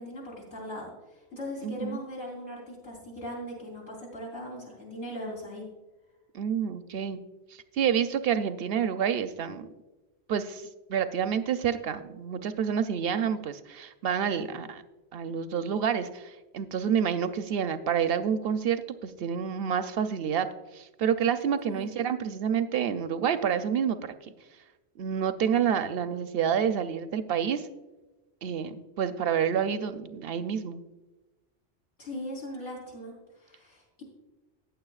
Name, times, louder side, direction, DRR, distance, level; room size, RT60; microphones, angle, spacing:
voice 1, 0.0-5.6 21.7-21.9 32.0-34.0, equal, 85° left, -5 dB, 4.1 m, -39 dB
voice 2, 1.6-2.0 6.3-7.2 7.7-9.7 10.3-10.6 10.9-14.8 15.1-20.5 20.7-24.1 25.0-27.7 28.4-30.8, right 8 dB, 65° right, 11 dB, 0.7 m, -28 dB
14.5 x 9.2 x 2.4 m, 1.1 s
omnidirectional pair, 1.2 m